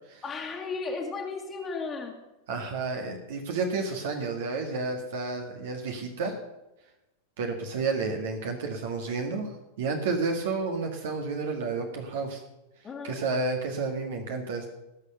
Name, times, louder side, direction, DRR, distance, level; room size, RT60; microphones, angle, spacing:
voice 1, 0.2-2.2 12.8-13.2, left 4 dB, 20° left, 1 dB, 2.0 m, -34 dB
voice 2, 2.5-6.4 7.4-12.4 13.0-14.7, right 4 dB, 55° right, 3 dB, 1.8 m, -31 dB
18.0 x 6.8 x 6.8 m, 0.94 s
figure-of-eight pair, 90°, 0 cm